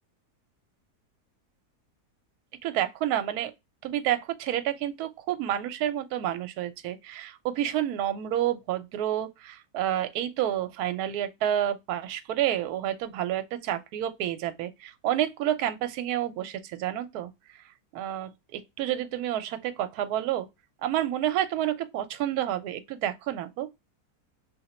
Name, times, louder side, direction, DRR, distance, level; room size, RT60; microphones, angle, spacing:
voice 1, 2.6-3.5 3.8-17.3 17.9-18.3 18.8-20.5 20.8-23.7, right 11 dB, 75° right, 1.0 m, -29 dB
2.9 x 2.7 x 4.1 m
omnidirectional pair, 1.7 m